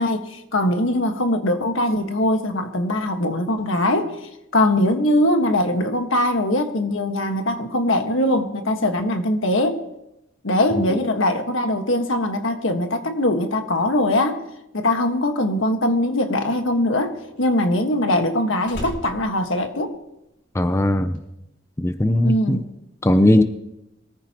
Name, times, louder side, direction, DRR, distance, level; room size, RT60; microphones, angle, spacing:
voice 1, 0.0-4.2 4.5-9.8 10.4-14.4 14.7-19.9 22.2-22.6, left 1 dB, 85° left, 5 dB, 1.6 m, -21 dB
Slam, 15.8-20.5 20.7-21.2, equal, 60° left, 4.2 m, -39 dB
voice 2, 20.5-21.2 21.8-22.6 23.0-23.4, left 1 dB, 15° left, 10 dB, 0.5 m, -18 dB
22.5 x 14.5 x 3.0 m, 0.87 s
head